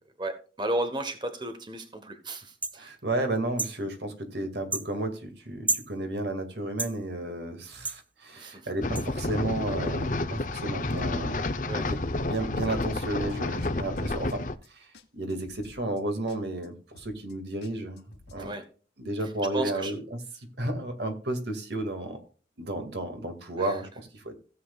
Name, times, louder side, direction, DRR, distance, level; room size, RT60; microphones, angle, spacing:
voice 1, 0.2-2.9 8.3-8.7 11.7-11.9 18.4-18.7 19.5-19.9 23.6-23.8, right 1 dB, 25° right, 8 dB, 1.1 m, -34 dB
sound 1, 2.6-2.8 3.6-3.8 4.7-4.9 5.7-5.9 6.8-7.0 7.8-8.0 8.9-9.1, right 3 dB, 10° right, 0.3 m, -30 dB
voice 2, 2.7-11.5 11.9-18.5 19.0-22.2 22.6-24.3, right 1 dB, 75° right, 6 dB, 2.2 m, -33 dB
sound 2, 8.8-14.6, left 2 dB, 45° left, 0.7 m, -30 dB
sound 3, 12.6-13.7 14.0-14.1 14.3-14.7 14.9-15.0 15.3-16.0 16.3-16.4 16.6-16.7 16.9-17.3 17.6-18.5, left 2 dB, 80° left, 1.6 m, -51 dB
16.0 x 7.9 x 2.4 m, 0.38 s
head